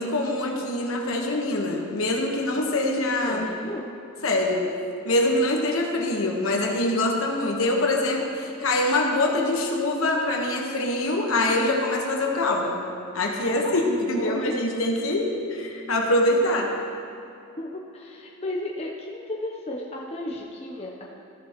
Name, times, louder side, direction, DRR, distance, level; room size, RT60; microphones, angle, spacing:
voice 1, 0.0-3.4 4.2-4.7 5.0-12.8 13.1-16.7, left 1 dB, 65° left, 0 dB, 1.2 m, -24 dB
voice 2, 3.2-3.9 13.5-13.8 14.1-14.5 17.6-21.1, left 1 dB, 30° left, -2 dB, 0.7 m, -34 dB
14.5 x 7.0 x 3.0 m, 2.6 s
head